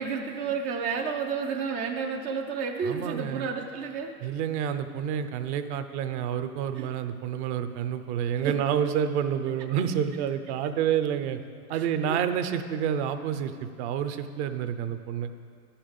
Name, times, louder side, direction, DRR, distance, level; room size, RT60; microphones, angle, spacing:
voice 1, 0.0-4.3 6.7-6.9 8.4-8.5 11.7-12.2, right 5 dB, 20° right, 2 dB, 0.3 m, -31 dB
voice 2, 2.8-3.5 4.2-11.4 11.7-15.3, right 8 dB, 50° right, 9 dB, 0.8 m, -29 dB
11.0 x 5.8 x 6.9 m, 2.1 s
hypercardioid pair, 125°, 45 cm